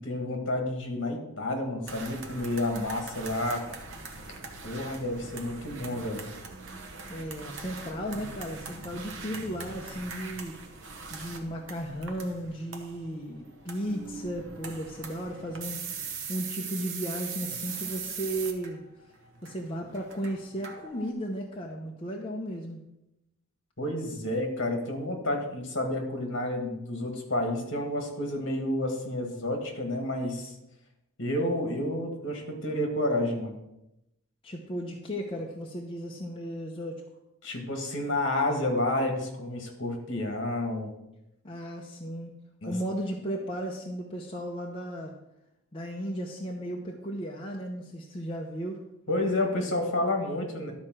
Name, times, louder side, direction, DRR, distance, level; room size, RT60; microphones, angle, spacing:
voice 1, 0.0-3.7 4.6-6.3 23.8-30.5 31.2-33.6 37.4-40.9 42.6-42.7 49.1-50.7, left 1 dB, 55° left, 3 dB, 1.8 m, -30 dB
sound 1, 1.9-21.1, right 5 dB, 55° right, 1.1 m, -41 dB
voice 2, 7.1-10.6 11.1-16.0 16.3-18.8 19.4-22.8 34.4-37.0 41.4-42.3 42.7-45.1 45.7-48.8, equal, 25° left, -1 dB, 0.8 m, -35 dB
12.0 x 4.4 x 6.2 m, 0.89 s
head